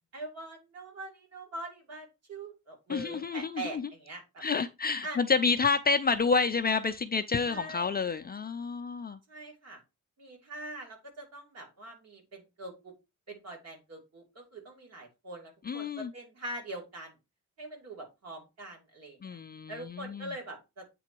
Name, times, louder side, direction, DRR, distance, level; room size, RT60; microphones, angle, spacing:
voice 1, 0.1-4.4 5.0-5.2 7.4-7.9 9.3-9.8 10.2-12.9 13.3-17.1 17.6-19.4 19.7-20.8, right 2 dB, 50° right, 2.7 m, -43 dB
voice 2, 2.9-3.9 4.4-9.2 15.6-16.1 19.2-20.3, left 5 dB, 30° left, 0.4 m, -29 dB
8.3 x 3.9 x 4.4 m
wide cardioid pair, 180°, 32 cm